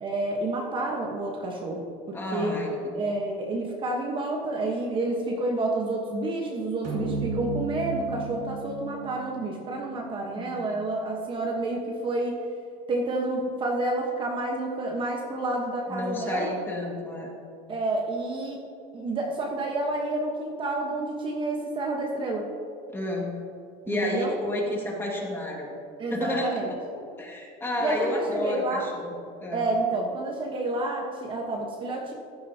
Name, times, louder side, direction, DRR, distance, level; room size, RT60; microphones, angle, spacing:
voice 1, 0.0-2.6 2.9-12.4 12.9-16.5 17.7-18.6 18.9-22.5 23.8-24.3 26.0-26.8 27.8-28.9 29.5-32.1, right 2 dB, 25° right, 0 dB, 1.1 m, -29 dB
voice 2, 2.1-2.9 10.3-10.8 15.9-17.3 22.9-23.3 23.9-25.7 26.1-26.8 27.2-29.6, left 1 dB, 10° left, -1 dB, 1.8 m, -31 dB
sound 1, 6.8-11.5, right 3 dB, 60° right, 2.5 m, -35 dB
14.5 x 11.5 x 2.8 m, 2.4 s
cardioid pair, 155°, 19 cm